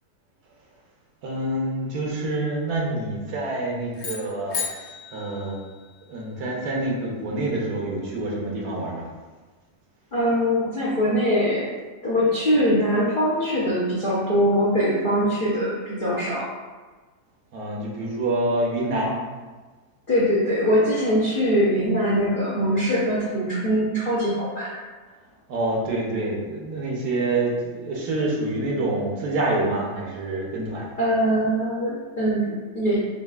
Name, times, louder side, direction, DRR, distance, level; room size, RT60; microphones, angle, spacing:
voice 1, 1.2-5.6 6.1-9.1 17.5-19.2 25.5-30.9, right 2 dB, 70° right, -2 dB, 1.3 m, -27 dB
sound 1, 3.9-6.3, left 6 dB, 75° left, 1.5 m, -34 dB
voice 2, 10.1-11.7 12.0-16.5 20.1-24.7 31.0-33.1, equal, 50° left, -9 dB, 0.6 m, -22 dB
6.8 x 2.4 x 2.3 m, 1.3 s
omnidirectional pair, 1.8 m